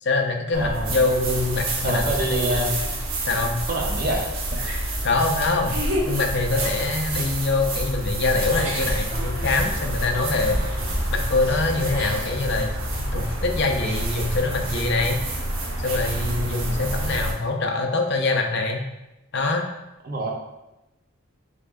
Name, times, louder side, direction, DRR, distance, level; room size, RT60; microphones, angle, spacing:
voice 1, 0.0-2.7 3.3-3.6 5.0-5.8 6.1-10.6 11.1-15.2 15.8-18.9 19.3-19.7, left 3 dB, 55° left, 3 dB, 0.5 m, -24 dB
voice 2, 0.5-1.0 1.8-3.0 3.7-4.6 16.4-16.8 20.0-20.3, right 1 dB, 45° right, 0 dB, 0.8 m, -27 dB
sound 1, 0.5-17.3, right 1 dB, 75° right, 1.0 m, -28 dB
5.4 x 3.6 x 2.6 m, 0.96 s
head